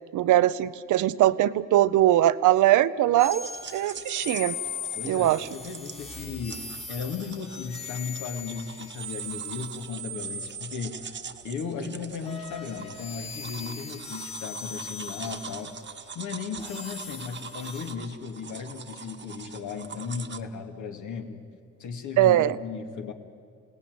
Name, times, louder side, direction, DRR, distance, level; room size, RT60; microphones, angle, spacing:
voice 1, 0.1-4.6 5.0-5.5 22.2-22.5, right 13 dB, 80° right, 15 dB, 0.8 m, -21 dB
sound 1, 3.2-11.5 12.2-17.9, left 3 dB, 20° left, 1.7 m, -40 dB
sound 2, 3.2-20.4, right 6 dB, 40° right, 1.2 m, -44 dB
voice 2, 4.9-11.2 11.4-15.7 16.1-21.4 21.8-23.1, left 5 dB, 75° left, 4 dB, 2.4 m, -36 dB
28.0 x 18.0 x 9.5 m, 2.2 s
cardioid pair, 90°, 30 cm